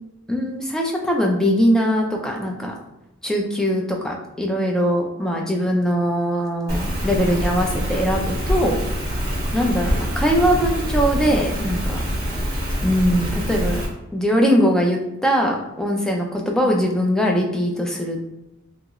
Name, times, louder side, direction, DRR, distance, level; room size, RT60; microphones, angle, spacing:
voice 1, 0.3-2.7 3.2-8.8 9.5-12.0 12.8-13.8 14.1-18.2, equal, 5° left, 0 dB, 0.3 m, -21 dB
Rain, 6.7-13.9, equal, 50° right, 1.3 m, -25 dB
3.0 x 2.8 x 2.3 m, 0.93 s
head